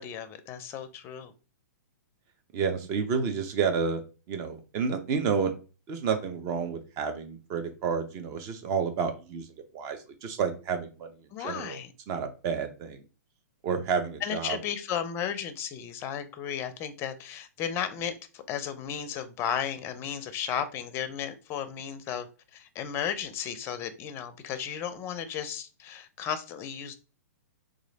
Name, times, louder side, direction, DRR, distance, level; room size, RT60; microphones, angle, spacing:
voice 1, 0.0-1.3 11.3-11.9 14.2-26.9, left 8 dB, 25° left, 0.5 m, -34 dB
voice 2, 2.5-4.0 4.3-5.5 5.9-9.5 9.7-11.1 11.4-11.8 12.1-13.0 13.6-14.6, right 6 dB, 35° right, 0.8 m, -30 dB
3.0 x 2.5 x 3.9 m
hypercardioid pair, 130°, 9 cm